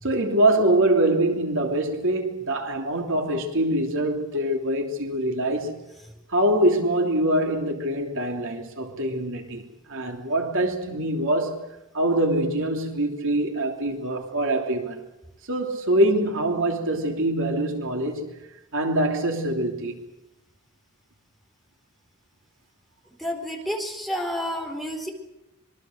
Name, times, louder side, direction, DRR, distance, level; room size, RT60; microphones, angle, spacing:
voice 1, 0.0-5.8 6.3-9.6 9.9-11.6 11.9-15.0 15.5-18.3 18.7-20.0, right 1 dB, 65° right, 3.1 m, -24 dB
voice 2, 23.2-25.1, equal, ahead, 4.4 m, -30 dB
26.5 x 23.0 x 6.6 m
head